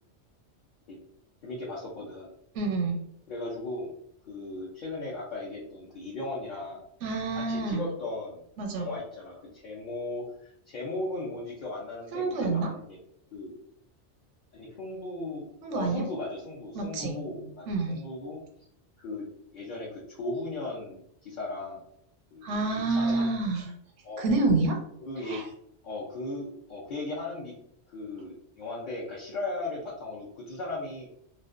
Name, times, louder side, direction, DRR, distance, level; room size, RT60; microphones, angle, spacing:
voice 1, 1.4-2.3 3.3-3.9 4.3-6.8 7.3-8.4 8.7-13.0 13.3-13.5 14.5-15.5 15.7-18.4 19.0-19.3 19.5-21.8 22.3-22.6 22.9-23.3 24.0-24.3 25.0-25.5 25.8-27.5 27.9-31.1, left 2 dB, 55° left, -5 dB, 0.6 m, -37 dB
voice 2, 2.5-3.0 7.0-7.9 8.6-8.9 12.1-12.7 15.6-16.0 16.7-17.1 17.7-18.0 22.4-23.7 24.2-24.8 25.3-25.4, right 3 dB, 85° right, 2 dB, 0.9 m, -27 dB
2.4 x 2.1 x 2.4 m, 0.74 s
omnidirectional pair, 1.2 m